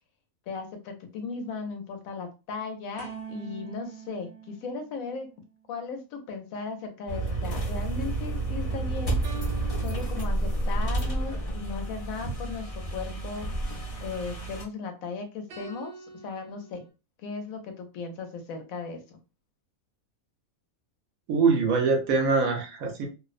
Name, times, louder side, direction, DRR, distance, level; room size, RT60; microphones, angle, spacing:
voice 1, 0.5-5.3 5.7-9.2 9.8-13.7 14.0-16.8 17.2-19.2, left 4 dB, 75° left, 5 dB, 1.1 m, -37 dB
sound 1, 3.0-5.5 9.2-11.0 15.5-16.9, right 5 dB, 60° right, 0.7 m, -44 dB
sound 2, 7.1-14.6, right 2 dB, 35° left, 0.5 m, -30 dB
voice 2, 21.3-23.1, right 4 dB, 75° right, 3 dB, 1.1 m, -23 dB
2.7 x 2.0 x 2.4 m, 0.30 s
omnidirectional pair, 1.5 m